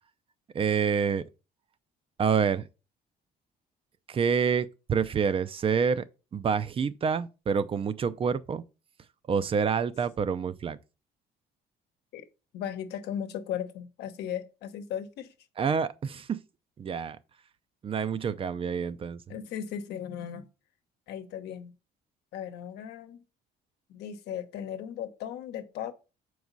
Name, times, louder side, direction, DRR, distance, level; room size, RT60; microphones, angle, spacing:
voice 1, 0.5-1.2 2.2-2.7 4.1-6.0 6.3-8.6 9.3-10.8 15.6-16.4 16.8-17.2 17.8-19.2, right 6 dB, 35° right, 0.5 m, -27 dB
voice 2, 12.5-15.3 19.3-20.5 21.1-21.7 22.3-23.2 23.9-25.9, left 9 dB, 75° left, 1.0 m, -37 dB
7.1 x 4.8 x 4.0 m
cardioid pair, 110°, 17 cm